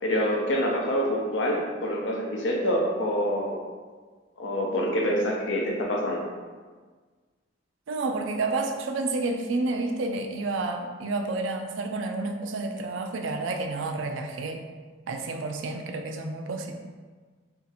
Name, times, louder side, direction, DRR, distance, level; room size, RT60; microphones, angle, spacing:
voice 1, 0.0-3.6 4.4-6.2, equal, 75° left, -1 dB, 0.6 m, -26 dB
voice 2, 7.9-14.6 15.1-16.7, right 3 dB, 85° right, 5 dB, 0.4 m, -30 dB
2.7 x 2.4 x 4.1 m, 1.5 s
head